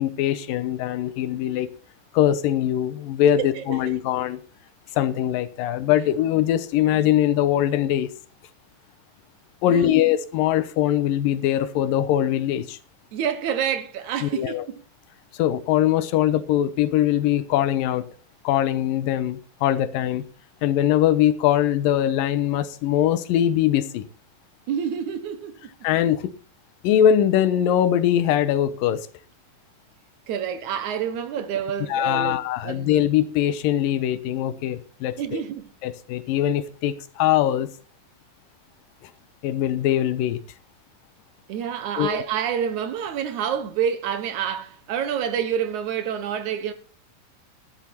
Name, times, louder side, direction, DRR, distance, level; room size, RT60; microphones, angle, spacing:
voice 1, 0.0-1.7 2.1-4.4 5.0-8.1 9.6-12.8 14.2-14.6 15.4-18.1 18.4-20.2 20.6-24.0 25.8-26.2 26.8-29.1 31.9-35.4 35.8-37.7 39.4-40.4 42.0-42.2, left 11 dB, 90° left, 2.7 m, -22 dB
voice 2, 3.4-3.9 9.7-10.1 13.1-14.8 24.7-25.6 30.3-32.9 35.2-35.7 41.5-46.7, right 8 dB, 70° right, 2.2 m, -28 dB
12.5 x 11.5 x 4.3 m
omnidirectional pair, 3.8 m